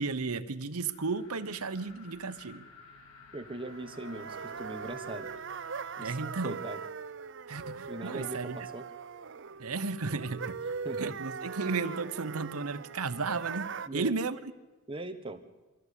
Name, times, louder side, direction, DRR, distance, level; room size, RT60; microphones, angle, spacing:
voice 1, 0.0-2.7 6.0-6.6 7.5-8.6 9.6-10.6 11.0-14.5, right 4 dB, 85° right, 10 dB, 1.0 m, -34 dB
sound 1, 0.9-5.9, left 4 dB, 80° left, 2.6 m, -54 dB
voice 2, 3.3-5.3 6.0-6.8 7.9-8.9 10.8-11.1 13.9-14.1 14.9-15.4, right 2 dB, 25° right, 6 dB, 1.3 m, -40 dB
sound 2, 3.6-13.9, right 5 dB, 55° right, 0.6 m, -40 dB
24.0 x 14.5 x 8.3 m, 1.2 s
head